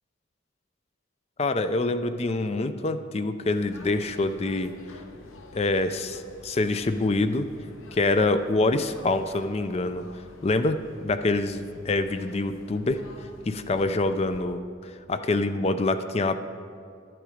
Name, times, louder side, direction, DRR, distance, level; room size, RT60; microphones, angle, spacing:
voice 1, 1.4-4.7 5.5-7.5 7.9-10.1 10.4-13.0 13.5-16.3, left 2 dB, 30° left, 10 dB, 0.4 m, -26 dB
sound 1, 3.6-14.4, left 2 dB, 85° left, 0.8 m, -49 dB
12.0 x 7.7 x 5.0 m, 2.4 s
head